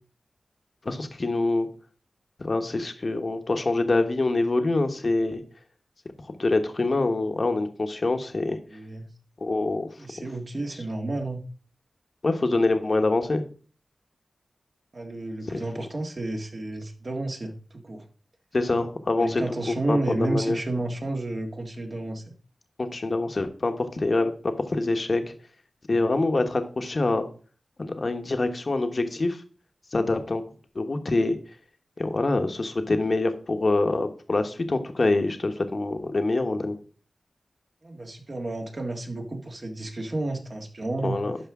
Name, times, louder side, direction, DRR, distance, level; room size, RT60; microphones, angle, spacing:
voice 1, 0.8-1.7 2.4-5.4 6.4-8.6 9.4-9.9 12.2-13.4 15.4-15.6 18.5-19.4 19.7-20.6 22.8-25.3 25.9-27.2 27.8-29.4 29.9-30.4 30.7-31.4 32.0-36.8 41.0-41.4, left 2 dB, 50° left, 7 dB, 1.2 m, -25 dB
voice 2, 8.7-9.1 10.0-11.4 14.9-18.0 19.2-22.3 37.8-41.2, right 2 dB, 50° right, 2 dB, 1.7 m, -31 dB
12.0 x 5.0 x 3.6 m, 0.40 s
cardioid pair, 55°, 0 cm